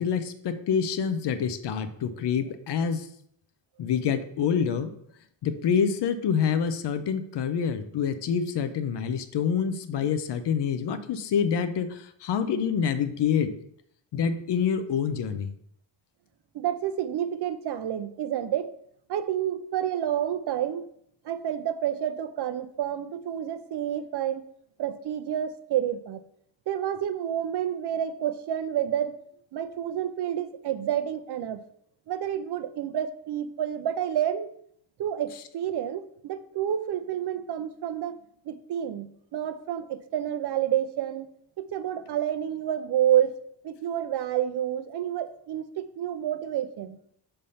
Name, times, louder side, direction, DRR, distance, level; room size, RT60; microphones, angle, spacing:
voice 1, 0.0-3.1 3.8-4.9 5.4-13.5 14.1-15.5, left 7 dB, 60° left, 11 dB, 0.6 m, -27 dB
voice 2, 16.5-18.7 19.1-20.9 21.2-24.4 24.8-26.2 26.7-29.2 29.5-31.6 32.1-34.5 35.0-38.2 38.5-41.3 41.6-43.4 43.6-47.0, right 10 dB, 60° right, 12 dB, 0.5 m, -29 dB
5.5 x 3.4 x 5.4 m, 0.68 s
wide cardioid pair, 170°, 47 cm